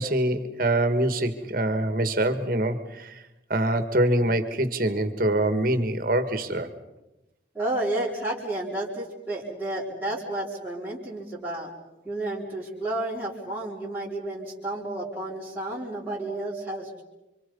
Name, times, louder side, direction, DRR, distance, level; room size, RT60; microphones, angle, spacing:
voice 1, 0.0-3.1 3.5-6.7, right 1 dB, 50° right, 9 dB, 2.0 m, -24 dB
voice 2, 7.5-11.7 12.0-17.0, right 1 dB, 10° right, -7 dB, 4.0 m, -31 dB
29.5 x 25.5 x 5.5 m, 0.99 s
head